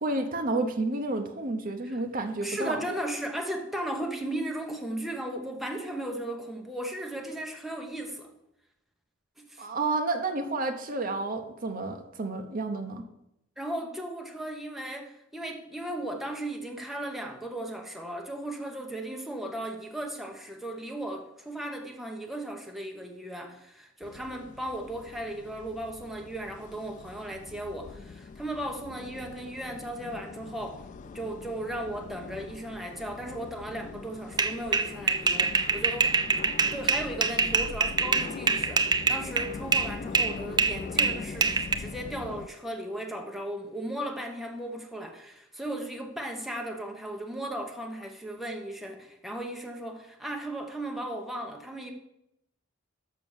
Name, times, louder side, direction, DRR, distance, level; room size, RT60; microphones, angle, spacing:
voice 1, 0.0-2.8 9.6-13.0, right 2 dB, 45° right, 0.8 m, -30 dB
voice 2, 2.4-8.3 9.4-9.7 13.6-36.2 36.4-51.9, right 1 dB, ahead, 1.0 m, -36 dB
sound 1, 24.0-42.5, left 4 dB, 40° left, 0.3 m, -42 dB
sound 2, 34.4-39.9 40.2-41.8, right 4 dB, 20° right, 0.5 m, -25 dB
6.6 x 6.0 x 7.1 m
head